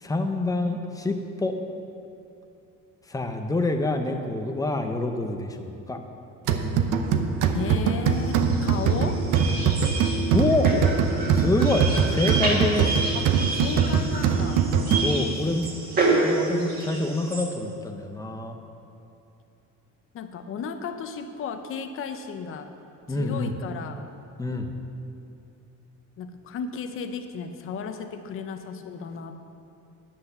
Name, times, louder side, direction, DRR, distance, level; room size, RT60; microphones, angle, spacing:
voice 1, 0.0-1.5 3.1-6.0 10.3-10.7 11.3-13.0 15.0-15.7 16.2-18.6 23.1-23.5 24.4-24.8, left 2 dB, 10° left, 5 dB, 0.6 m, -26 dB
sound 1, 6.5-15.4, right 6 dB, 75° right, 0.8 m, -23 dB
voice 2, 7.5-9.2 13.1-14.7 20.1-22.7 23.2-24.1 26.2-29.4, left 6 dB, 40° left, 7 dB, 0.7 m, -34 dB
sound 2, 8.1-17.4, right 2 dB, 30° right, 1.8 m, -29 dB
10.0 x 8.2 x 6.7 m, 2.7 s
cardioid pair, 170°, 31 cm